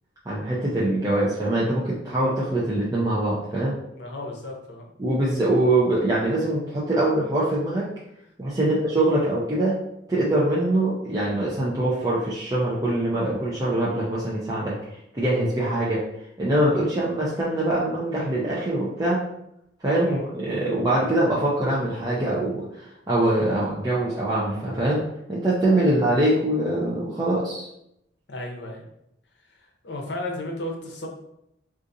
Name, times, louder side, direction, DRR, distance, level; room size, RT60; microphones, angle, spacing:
voice 1, 0.3-3.7 5.0-7.9 8.4-9.8 10.1-14.8 15.1-16.0 16.4-19.2 19.8-27.7, right 1 dB, 20° right, -7 dB, 0.5 m, -23 dB
voice 2, 3.9-4.9 8.6-8.8 20.0-20.2 28.3-28.9 29.5-31.1, left 1 dB, 65° left, 1 dB, 0.7 m, -34 dB
3.8 x 2.5 x 2.6 m, 0.80 s
head